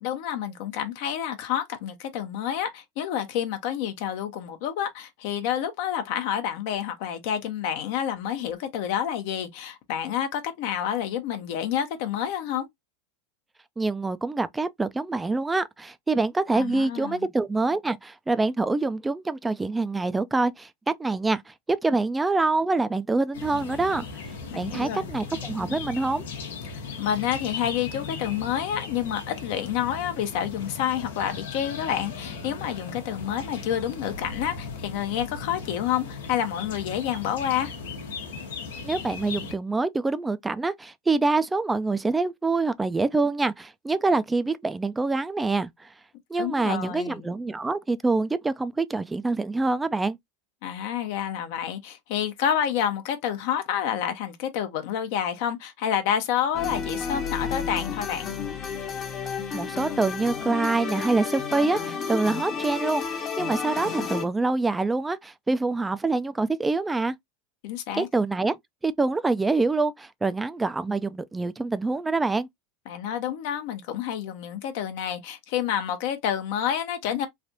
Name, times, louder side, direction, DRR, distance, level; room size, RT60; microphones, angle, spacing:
voice 1, 0.0-12.7 16.5-17.3 24.5-25.0 27.0-37.7 46.4-47.3 50.6-58.3 67.6-68.1 72.9-77.3, left 9 dB, 65° left, 0.7 m, -29 dB
voice 2, 13.8-24.1 24.5-26.2 38.8-45.9 46.3-50.2 59.5-67.1 67.9-68.5 68.8-72.5, right 3 dB, 10° right, 0.4 m, -25 dB
sound 1, 23.3-39.5, left 5 dB, 90° left, 1.0 m, -37 dB
sound 2, 56.5-64.3, left 6 dB, 35° left, 0.8 m, -31 dB
3.3 x 2.4 x 2.7 m
hypercardioid pair, 105°, 0 cm